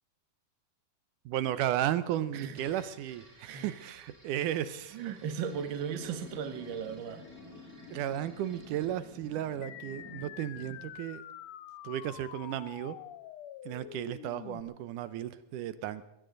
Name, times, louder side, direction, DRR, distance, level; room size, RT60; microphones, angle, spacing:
voice 1, 1.3-5.0 7.9-11.2 11.8-13.0 13.7-16.0, right 11 dB, 85° right, 2.3 m, -34 dB
sound 1, 2.5-10.3, right 1 dB, 25° right, 5.3 m, -59 dB
voice 2, 3.5-3.8 4.9-7.3, right 7 dB, 50° right, 1.6 m, -36 dB
sound 2, 5.5-10.9, left 2 dB, 85° left, 4.2 m, -50 dB
sound 3, 9.6-14.6, left 11 dB, 70° left, 1.8 m, -46 dB
21.0 x 16.5 x 3.9 m
omnidirectional pair, 3.6 m